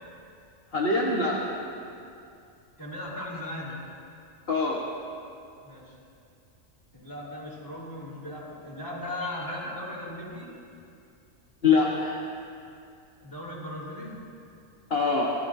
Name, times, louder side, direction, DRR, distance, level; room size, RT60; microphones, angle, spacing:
voice 1, 0.7-1.4 4.5-4.8 9.5-9.6 11.6-12.2 14.9-15.3, left 4 dB, 50° left, -4 dB, 1.6 m, -24 dB
voice 2, 2.8-3.8 5.6-5.9 6.9-10.5 13.2-14.2, left 1 dB, 15° left, -6 dB, 4.2 m, -37 dB
25.0 x 17.5 x 2.7 m, 2.5 s
omnidirectional pair, 1.3 m